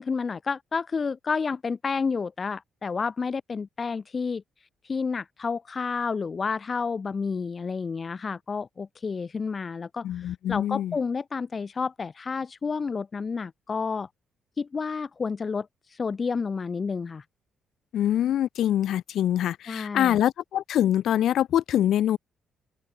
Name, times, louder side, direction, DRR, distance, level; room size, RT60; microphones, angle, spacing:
voice 1, 0.0-4.4 4.8-14.1 14.6-17.2 19.7-20.2, left 5 dB, 35° left, 2.3 m, -30 dB
voice 2, 10.0-11.0 17.9-22.2, left 11 dB, 75° left, 2.1 m, -24 dB
cardioid pair, 90°, 0 cm